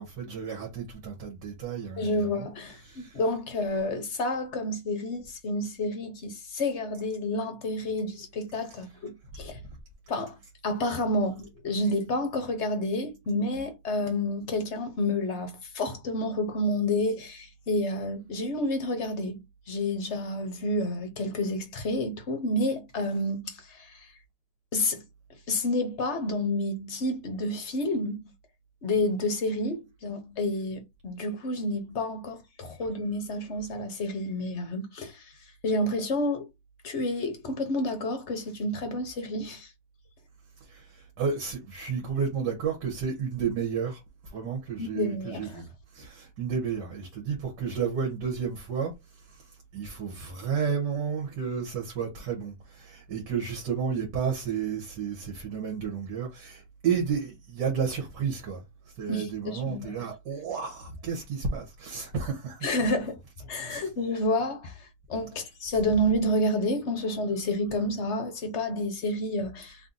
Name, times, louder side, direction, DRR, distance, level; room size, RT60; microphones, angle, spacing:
voice 1, 0.0-2.5 2.9-3.2 40.7-45.7 45.9-49.4 49.7-58.6 59.0-62.9 63.7-63.9, right 6 dB, 75° right, 1.7 m, -32 dB
voice 2, 2.0-9.6 10.1-10.4 10.6-19.4 19.7-24.1 24.7-25.0 25.5-28.2 28.8-35.3 35.6-36.5 36.8-39.7 44.8-45.6 59.1-60.1 62.6-63.2 63.5-69.9, left 1 dB, 50° left, 1.0 m, -29 dB
3.3 x 2.7 x 3.8 m
omnidirectional pair, 1.8 m